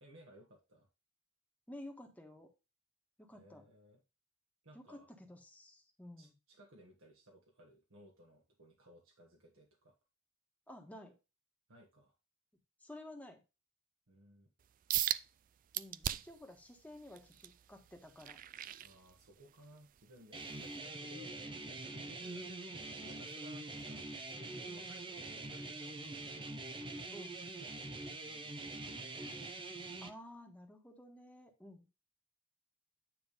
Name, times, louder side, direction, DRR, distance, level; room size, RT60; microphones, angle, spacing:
voice 1, 0.0-0.9 3.3-4.0 4.6-5.1 6.2-9.9 11.7-12.1 14.1-14.5 18.8-24.1 24.6-26.3 28.1-29.7, equal, 75° right, 0 dB, 1.6 m, -61 dB
voice 2, 1.7-2.5 3.2-3.6 4.7-6.3 10.7-11.2 12.8-13.4 15.7-18.4 27.1-27.4 30.0-31.8, left 1 dB, 10° left, 2 dB, 1.5 m, -52 dB
sound 1, 14.9-15.2 15.7-16.4 16.9-19.5 20.0-20.2 20.8-20.9, right 12 dB, 40° right, 0.3 m, -37 dB
sound 2, 20.3-30.1, right 2 dB, 25° right, 0.7 m, -44 dB
9.4 x 3.4 x 5.2 m, 0.28 s
head